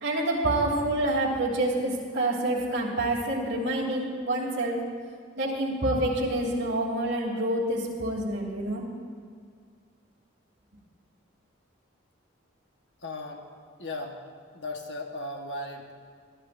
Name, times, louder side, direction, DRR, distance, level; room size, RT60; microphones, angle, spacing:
voice 1, 0.0-4.8 5.4-8.8, right 1 dB, 65° right, -4 dB, 2.9 m, -27 dB
voice 2, 13.0-13.5 13.8-14.2 14.5-15.9, left 2 dB, 60° left, 2 dB, 1.3 m, -36 dB
21.5 x 13.0 x 2.6 m, 2.1 s
head